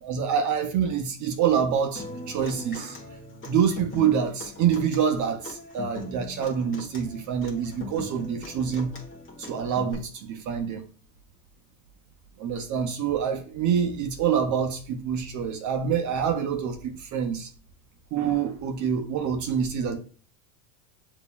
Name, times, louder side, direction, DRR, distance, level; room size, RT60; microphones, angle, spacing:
voice 1, 0.0-3.0 3.5-9.0 9.4-10.9 12.4-17.5 18.1-20.0, right 7 dB, 40° right, 0.7 m, -26 dB
Human voice / Acoustic guitar, 1.9-9.9, left 2 dB, 25° left, 1.3 m, -41 dB
6.5 x 2.8 x 2.3 m
hypercardioid pair, 95°, 47 cm